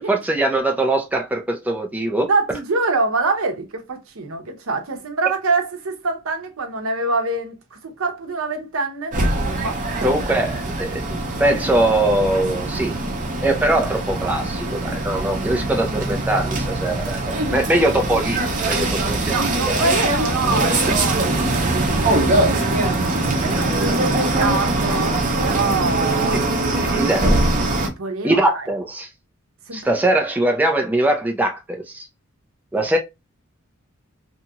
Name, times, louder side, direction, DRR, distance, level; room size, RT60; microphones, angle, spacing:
voice 1, 0.1-2.3 10.0-13.0 13.4-19.2 26.7-27.3 28.2-29.1 29.7-32.1 32.7-33.0, right 1 dB, 5° right, 0.4 m, -21 dB
voice 2, 2.2-9.2 9.6-10.1 19.2-27.1 27.8-28.7 29.7-30.1, right 3 dB, 70° right, 0.8 m, -25 dB
sound 1, 9.1-27.9, right 2 dB, 40° right, 0.7 m, -22 dB
2.8 x 2.4 x 2.7 m
head